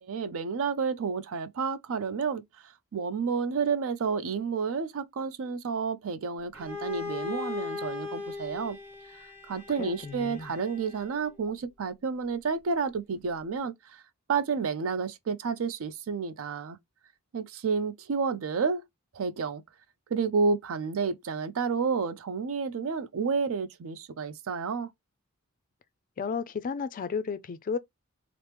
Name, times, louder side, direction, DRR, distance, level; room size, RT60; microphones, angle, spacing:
voice 1, 0.0-2.4 2.9-8.8 9.5-14.0 14.3-16.8 17.3-18.8 19.1-19.6 20.1-24.9, right 5 dB, 65° right, 0.4 m, -30 dB
Bowed string instrument, 6.5-11.4, left 4 dB, 10° right, 1.2 m, -39 dB
voice 2, 9.8-10.5 26.2-27.8, left 5 dB, 40° left, 0.3 m, -33 dB
2.9 x 2.0 x 3.3 m
head